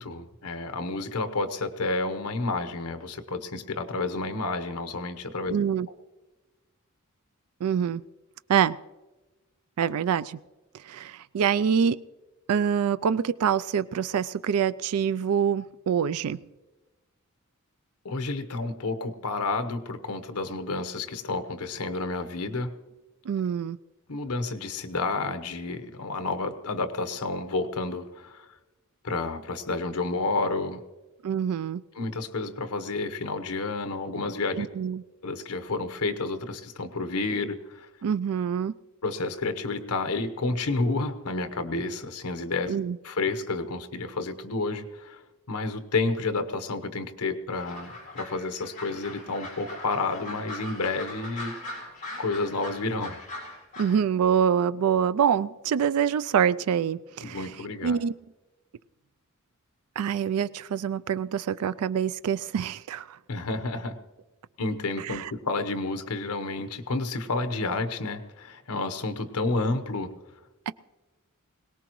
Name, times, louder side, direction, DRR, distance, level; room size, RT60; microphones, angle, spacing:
voice 1, 0.0-5.5 18.0-22.7 24.1-28.5 29.0-30.8 32.0-34.7 35.2-37.9 39.0-42.7 43.0-45.2 45.5-51.5 52.2-53.2 57.2-58.0 63.3-64.0 64.6-70.1, left 3 dB, 85° left, 9 dB, 1.0 m, -30 dB
voice 2, 5.5-5.9 7.6-8.0 8.5-8.8 9.8-10.4 10.8-12.0 12.5-16.4 23.3-23.8 31.2-31.8 34.5-35.0 38.0-38.7 42.7-43.0 53.8-57.5 57.8-58.1 60.0-63.2 65.0-65.3 70.7-70.8, right 8 dB, 80° right, 16 dB, 0.4 m, -25 dB
sound 1, 47.5-54.0, left 1 dB, 40° left, 5.8 m, -40 dB
21.5 x 18.0 x 3.1 m, 1.2 s
head